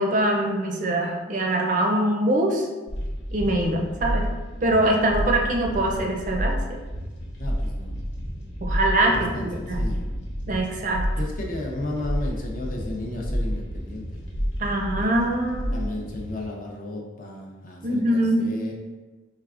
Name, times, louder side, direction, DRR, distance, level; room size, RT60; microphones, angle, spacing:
voice 1, 0.0-2.7 3.3-4.3 4.6-6.8 8.6-9.9 10.5-11.1 14.6-15.8 17.8-18.5, right 1 dB, 40° right, 0 dB, 0.5 m, -23 dB
sound 1, 2.9-16.4, equal, 70° left, 0.9 m, -30 dB
voice 2, 5.1-5.4 7.4-8.0 9.1-10.3 11.2-14.2 15.7-18.7, left 2 dB, 45° left, -1 dB, 0.6 m, -34 dB
4.6 x 3.2 x 2.5 m, 1.2 s
head